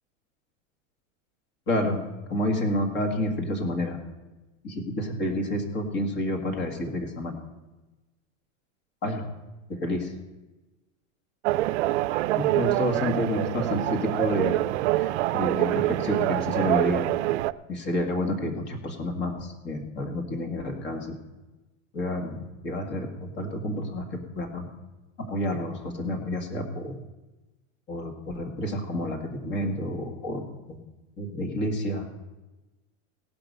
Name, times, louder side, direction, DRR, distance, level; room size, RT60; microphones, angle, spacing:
voice 1, 1.7-4.0 4.6-7.4 9.0-9.3 9.7-10.1 12.3-14.6 15.0-17.1 17.7-21.1 21.9-24.7 25.2-27.0 27.9-30.8 31.2-32.1, left 1 dB, 30° left, 4 dB, 2.1 m, -29 dB
sound 1, 11.4-17.5, right 17 dB, 60° right, 0.5 m, -25 dB
17.5 x 6.0 x 6.7 m, 1.1 s
supercardioid pair, 155°, 38 cm